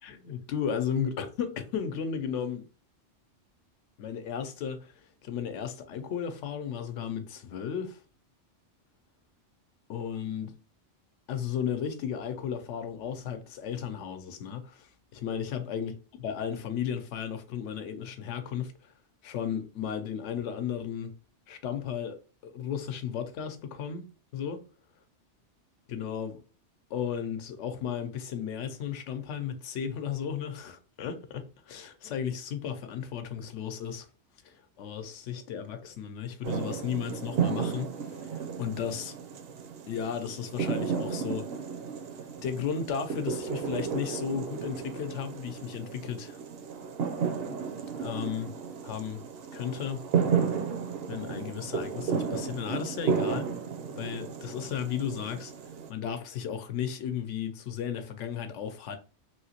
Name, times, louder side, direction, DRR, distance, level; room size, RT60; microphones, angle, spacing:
voice 1, 0.0-2.7 4.0-8.0 9.9-10.5 11.3-18.7 19.2-21.1 21.5-22.2 22.4-24.1 24.3-24.6 25.9-26.4 26.9-34.1 34.4-39.2 39.9-41.5 42.4-46.4 48.0-48.5 48.8-49.2 49.5-50.0 51.1-53.5 54.0-55.5 55.9-59.0, left 8 dB, 80° left, 0.9 m, -34 dB
sound 1, 36.4-55.9, right 6 dB, 65° right, 0.7 m, -33 dB
3.2 x 2.8 x 2.8 m
omnidirectional pair, 1.2 m